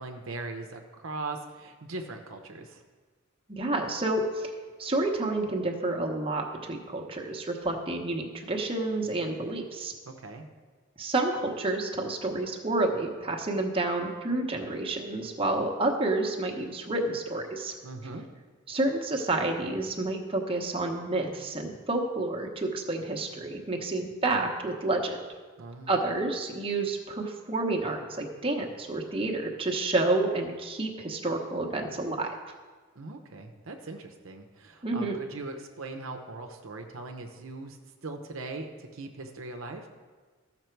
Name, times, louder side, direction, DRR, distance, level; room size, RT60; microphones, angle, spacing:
voice 1, 0.0-2.8 10.1-10.5 17.8-18.2 25.6-25.9 33.0-37.8 38.0-39.9, right 3 dB, 70° right, 5 dB, 0.8 m, -40 dB
voice 2, 3.5-4.5 4.8-9.9 11.0-17.7 18.7-25.2 25.9-32.3 34.8-35.2, right 2 dB, 25° right, 1 dB, 0.9 m, -29 dB
14.0 x 5.9 x 4.5 m, 1.4 s
head